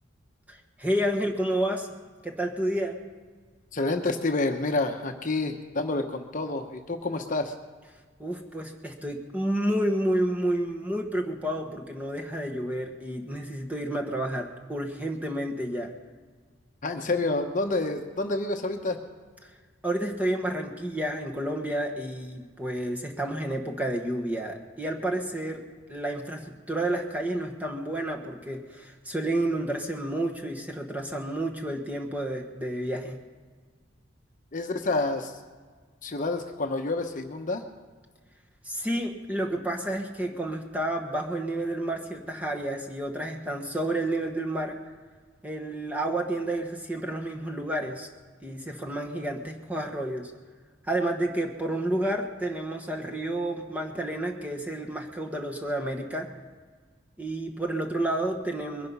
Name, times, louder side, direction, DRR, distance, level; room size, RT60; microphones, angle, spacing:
voice 1, 0.5-1.9 2.2-3.0 8.2-15.9 19.8-25.6 25.9-33.2 38.6-44.8 45.4-48.1 48.4-50.3 50.9-56.3 57.2-58.9, right 1 dB, 10° right, 1 dB, 1.3 m, -30 dB
voice 2, 3.7-7.5 16.8-19.0 34.5-35.3 36.0-37.6, left 2 dB, 40° left, 5 dB, 1.0 m, -28 dB
22.0 x 10.5 x 5.5 m, 1.5 s
head